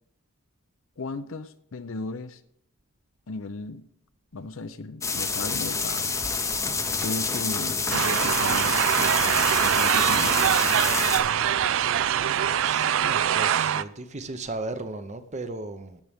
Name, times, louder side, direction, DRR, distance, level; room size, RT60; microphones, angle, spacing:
voice 1, 1.0-2.4 3.3-3.8 4.3-6.2 7.0-8.8 9.6-10.3, left 3 dB, 65° left, 12 dB, 0.6 m, -35 dB
sound 1, 5.0-11.2, left 4 dB, 15° left, 0.7 m, -28 dB
sound 2, 7.9-13.8, right 9 dB, 60° right, 0.3 m, -23 dB
voice 2, 12.6-16.0, right 2 dB, 30° right, 9 dB, 0.7 m, -36 dB
16.0 x 6.1 x 3.5 m, 0.73 s
head